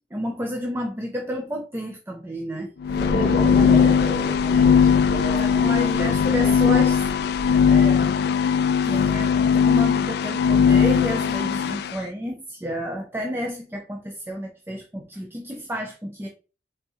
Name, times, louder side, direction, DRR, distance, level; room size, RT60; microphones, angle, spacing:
voice 1, 0.1-2.7 5.0-7.0 7.6-8.2 8.8-16.3, equal, 15° right, 2 dB, 0.5 m, -31 dB
sound 1, 2.8-11.9, left 7 dB, 60° left, 0.3 m, -19 dB
sound 2, 2.9-7.5, equal, 55° right, 2.0 m, -30 dB
voice 2, 3.1-7.0, left 2 dB, 45° left, 0 dB, 0.8 m, -32 dB
4.1 x 3.5 x 2.7 m, 0.35 s
head